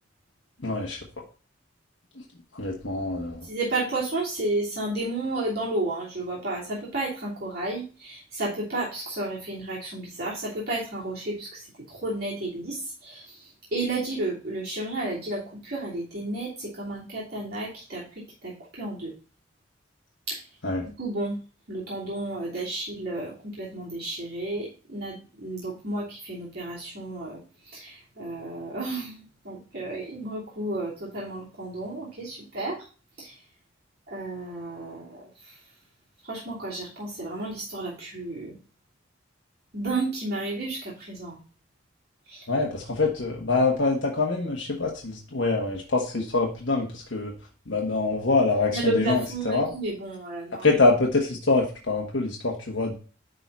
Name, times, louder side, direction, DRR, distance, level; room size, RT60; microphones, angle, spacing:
voice 1, 0.6-1.0 2.5-3.4 20.6-20.9 42.5-47.3 47.7-49.7 50.6-53.0, left 3 dB, 80° left, -2 dB, 1.4 m, -25 dB
voice 2, 3.4-19.1 20.3-20.4 20.8-21.4 21.7-32.8 33.2-33.4 34.1-35.6 36.2-38.5 39.7-41.4 42.3-42.4 48.7-50.7, right 2 dB, 55° right, -7 dB, 3.0 m, -32 dB
10.0 x 4.0 x 4.1 m, 0.36 s
head